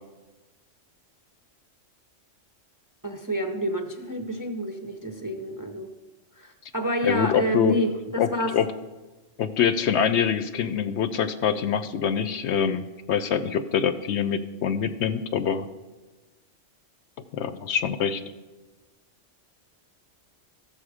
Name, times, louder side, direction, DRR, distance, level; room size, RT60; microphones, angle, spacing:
voice 1, 3.0-5.9 6.4-8.5, equal, 20° right, 5 dB, 0.5 m, -29 dB
voice 2, 7.0-7.8 8.2-8.7 9.4-15.6 17.3-18.2, left 7 dB, 70° left, 11 dB, 0.8 m, -25 dB
14.0 x 7.0 x 4.9 m, 1.2 s
omnidirectional pair, 1.3 m